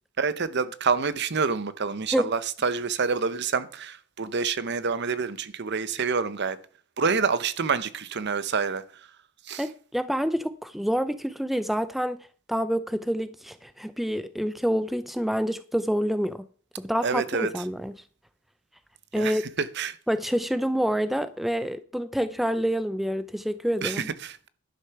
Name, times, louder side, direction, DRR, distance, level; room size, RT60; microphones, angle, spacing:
voice 1, 0.2-6.6 7.0-8.8 9.5-9.6 17.0-17.5 19.2-20.0 23.8-24.5, right 5 dB, 55° right, 0.8 m, -27 dB
voice 2, 9.6-16.5 16.8-18.0 19.1-19.4 20.1-24.1, equal, ahead, 0.4 m, -27 dB
11.5 x 6.6 x 5.8 m
head